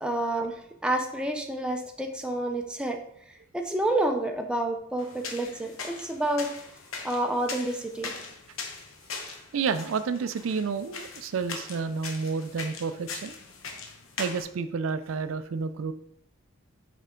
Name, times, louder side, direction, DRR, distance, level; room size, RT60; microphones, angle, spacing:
voice 1, 0.0-3.0 3.5-6.5 7.0-8.1, right 1 dB, 5° right, 3 dB, 0.5 m, -29 dB
sound 1, 5.0-14.4, left 4 dB, 85° left, 0.9 m, -41 dB
voice 2, 9.5-13.4 14.2-15.9, right 5 dB, 75° right, 12 dB, 0.4 m, -30 dB
5.4 x 4.7 x 3.7 m, 0.69 s
head